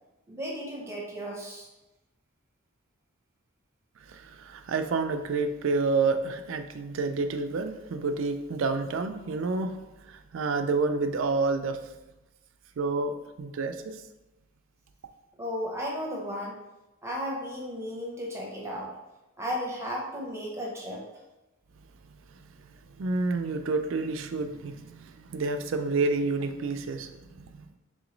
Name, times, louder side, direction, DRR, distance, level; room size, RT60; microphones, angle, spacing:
voice 1, 0.3-1.7 15.4-16.6 17.0-18.9 19.4-21.0, equal, 15° right, -2 dB, 0.7 m, -34 dB
voice 2, 4.1-9.8 10.1-11.8 12.8-14.0 22.3-22.5 23.0-27.7, right 3 dB, 65° right, 8 dB, 0.4 m, -29 dB
3.7 x 3.0 x 3.8 m, 1.0 s
head